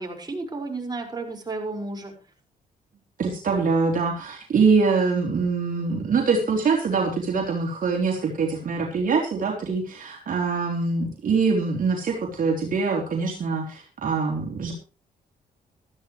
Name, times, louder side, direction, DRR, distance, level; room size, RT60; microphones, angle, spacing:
voice 1, 0.0-2.1, right 3 dB, 25° right, 1 dB, 5.5 m, -32 dB
voice 2, 3.2-14.7, right 4 dB, 55° right, 0 dB, 3.7 m, -24 dB
15.5 x 13.5 x 3.3 m, 0.34 s
cardioid pair, 80°, 16 cm